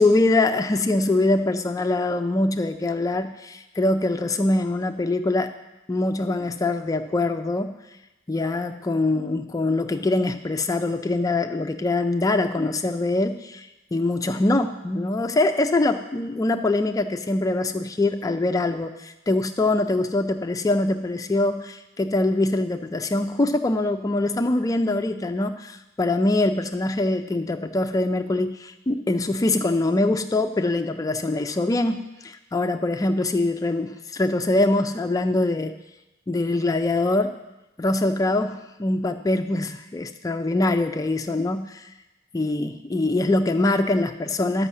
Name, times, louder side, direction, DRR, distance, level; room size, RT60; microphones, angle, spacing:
voice 1, 0.0-5.5 5.9-7.8 8.3-35.8 36.3-37.4 37.8-41.9 42.3-44.7, left 2 dB, 20° left, 7 dB, 0.3 m, -23 dB
11.0 x 5.5 x 7.2 m, 1.0 s
head